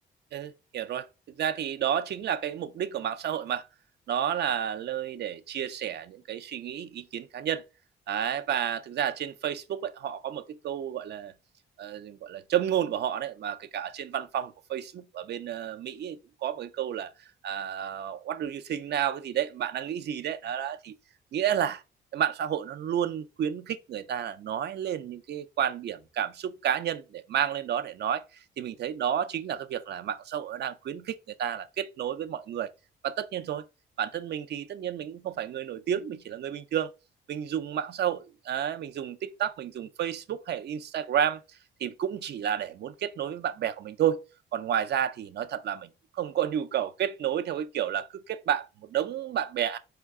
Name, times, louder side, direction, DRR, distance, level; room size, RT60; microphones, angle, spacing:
voice 1, 0.3-3.6 4.1-7.6 8.1-11.3 11.8-17.1 17.4-20.9 21.3-21.8 22.1-28.2 28.6-32.7 33.0-33.7 34.0-36.9 37.3-41.4 41.8-44.2 44.5-49.8, right 9 dB, 60° right, 0.5 m, -31 dB
4.5 x 2.2 x 3.5 m
cardioid pair, 90°, 20 cm